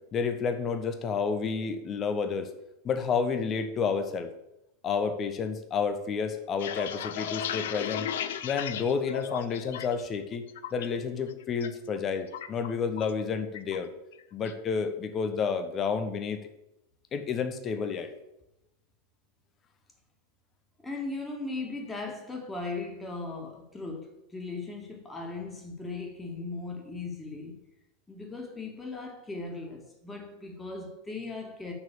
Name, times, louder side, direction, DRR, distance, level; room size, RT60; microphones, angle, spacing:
voice 1, 0.1-2.5 2.8-4.3 4.8-8.1 8.4-10.4 10.7-13.9 14.3-16.4 17.1-18.1, left 5 dB, 25° left, 1.1 m, -30 dB
sound 1, 6.4-10.0 10.4-10.9 11.3-11.7 12.0-13.2 13.5-13.8 14.1-14.6, left 9 dB, 55° left, 0.6 m, -35 dB
voice 2, 20.8-27.6 28.1-31.7, left 3 dB, 10° left, 2.2 m, -38 dB
7.2 x 6.1 x 7.0 m
figure-of-eight pair, 90°, 0 cm